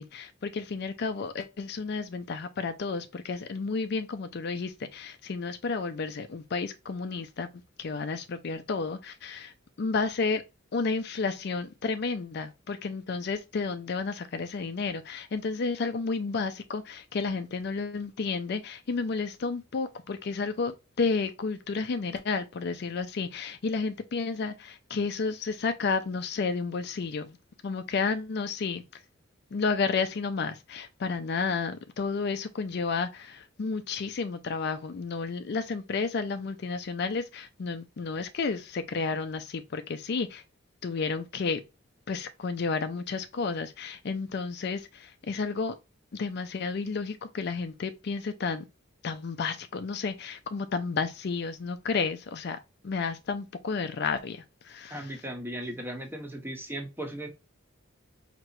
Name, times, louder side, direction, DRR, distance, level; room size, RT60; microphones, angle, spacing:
voice 1, 0.0-7.5 7.8-9.5 9.8-10.4 10.7-27.4 27.6-28.8 29.5-40.4 40.8-41.6 42.1-45.7 46.1-48.6 49.0-52.6 52.8-55.1, left 4 dB, 55° left, 0.4 m, -31 dB
voice 2, 54.9-57.3, right 1 dB, 10° right, 1.0 m, -37 dB
4.6 x 2.9 x 2.6 m
head